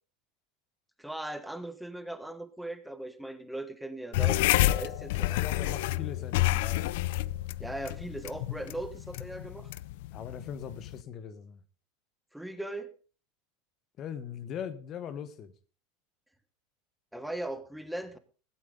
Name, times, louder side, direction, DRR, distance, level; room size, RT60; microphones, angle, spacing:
voice 1, 1.0-5.8 7.6-9.7 12.3-12.9 17.1-18.2, right 1 dB, ahead, 1.2 m, -39 dB
sound 1, 4.1-11.0, left 16 dB, 70° left, 0.5 m, -29 dB
voice 2, 5.1-6.9 10.1-11.6 14.0-15.5, left 8 dB, 40° left, 1.4 m, -40 dB
16.0 x 12.0 x 3.9 m
supercardioid pair, 110°, 0 cm